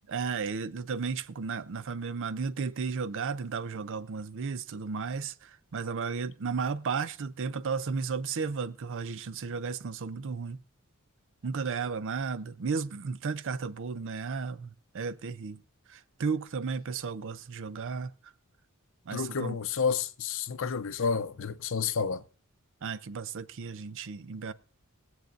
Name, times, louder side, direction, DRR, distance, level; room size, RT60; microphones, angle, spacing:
voice 1, 0.1-10.6 11.4-15.6 15.9-18.1 19.1-19.6 22.8-24.5, right 5 dB, 60° right, 0.5 m, -34 dB
voice 2, 19.1-22.2, left 5 dB, 60° left, 0.6 m, -30 dB
21.0 x 8.0 x 2.6 m
head